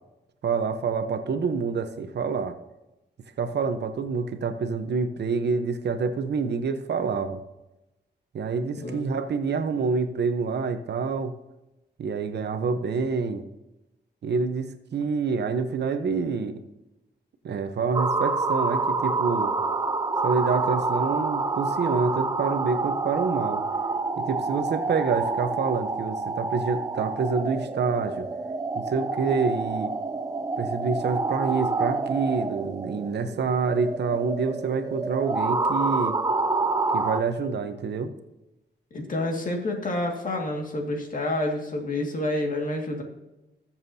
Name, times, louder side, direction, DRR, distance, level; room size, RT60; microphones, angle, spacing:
voice 1, 0.4-2.6 3.4-7.4 8.3-11.3 12.0-13.4 14.2-16.5 17.4-19.5 20.2-23.6 24.2-28.3 28.7-29.9 30.6-36.2 36.9-38.1, right 5 dB, 70° right, 9 dB, 0.9 m, -27 dB
sound 1, 17.9-37.2, right 3 dB, 20° right, 0.5 m, -28 dB
voice 2, 38.9-43.0, left 1 dB, 50° left, 1 dB, 2.1 m, -28 dB
20.5 x 7.4 x 2.8 m, 0.99 s
wide cardioid pair, 145°, 18 cm